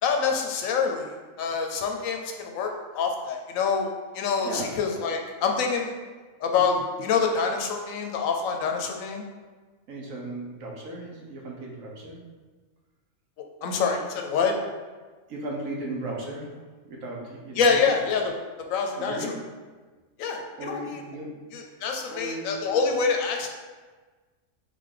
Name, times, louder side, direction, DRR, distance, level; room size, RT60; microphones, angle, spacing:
voice 1, 0.0-5.9 6.4-9.2 13.6-14.5 17.6-18.3 18.7-19.2 20.2-21.0 21.5-23.5, left 5 dB, 80° left, 3 dB, 1.0 m, -26 dB
voice 2, 4.4-4.7 9.9-12.2 15.3-17.8 19.0-19.5 20.6-21.4 21.7-21.8 22.1-22.6, right 1 dB, 75° right, -2 dB, 1.3 m, -36 dB
3.7 x 3.3 x 3.7 m, 1.4 s
omnidirectional pair, 1.4 m